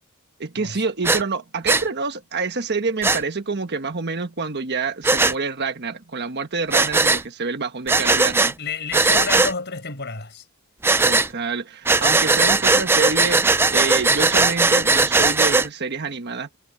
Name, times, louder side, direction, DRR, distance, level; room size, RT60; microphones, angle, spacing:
voice 1, 0.4-8.6 11.0-16.6, right 4 dB, 50° right, 1.3 m, -27 dB
Breathing, 1.0-1.2 1.7-1.8 3.0-3.2 5.0-5.3 6.7-7.2 7.9-8.5 8.9-9.5 10.8-11.3 11.9-15.7, right 3 dB, 10° right, 0.4 m, -18 dB
voice 2, 8.6-10.4, left 4 dB, 50° left, 6.0 m, -30 dB
head